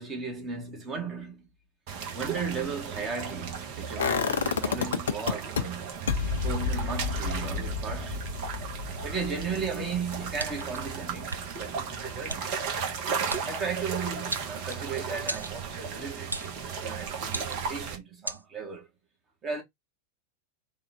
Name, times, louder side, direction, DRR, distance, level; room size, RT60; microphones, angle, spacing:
voice 1, 0.0-1.5 2.1-6.0 6.4-8.3 9.0-12.4 13.5-18.9 19.4-19.6, right 5 dB, 25° right, 1.3 m, -36 dB
sound 1, 1.9-18.0, right 6 dB, 45° right, 1.1 m, -36 dB
sound 2, 4.0-5.6 6.1-11.9 12.2-12.3, left 6 dB, 65° left, 0.5 m, -31 dB
sound 3, 10.4-10.8 11.3-11.4 12.3-12.4 13.3-13.5 14.3-14.9 15.3-15.6 16.3-16.6 17.3-17.7 18.3-18.4, right 2 dB, 85° right, 0.3 m, -35 dB
3.7 x 2.4 x 3.3 m
figure-of-eight pair, 90°, 0 cm